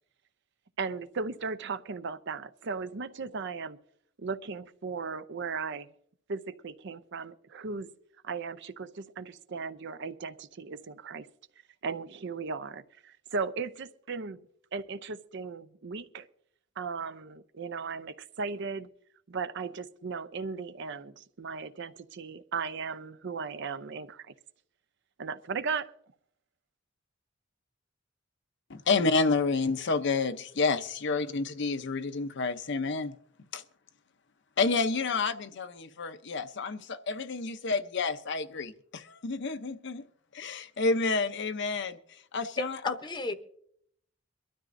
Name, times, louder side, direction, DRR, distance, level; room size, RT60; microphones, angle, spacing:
voice 1, 0.8-3.8 4.2-5.9 6.3-7.9 8.2-11.3 11.8-14.4 14.7-16.3 16.8-18.9 19.3-24.3 25.2-25.9, right 5 dB, 60° right, 0.6 m, -36 dB
voice 2, 28.7-33.1 33.5-33.6 34.6-40.0 40.3-43.0, left 4 dB, 60° left, 0.7 m, -29 dB
voice 3, 42.6-43.3, left 3 dB, 20° left, 0.8 m, -33 dB
23.5 x 12.5 x 2.6 m
head